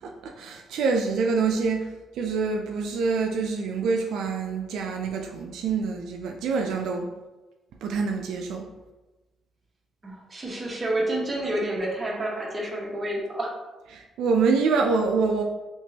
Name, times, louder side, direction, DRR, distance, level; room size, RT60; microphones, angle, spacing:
voice 1, 0.0-7.1 7.8-8.7 13.9-15.4, right 4 dB, 85° right, 2 dB, 0.3 m, -26 dB
voice 2, 10.0-13.5, right 1 dB, 25° right, -1 dB, 0.8 m, -29 dB
3.5 x 2.9 x 2.7 m, 1.1 s
cardioid pair, 90°, 0 cm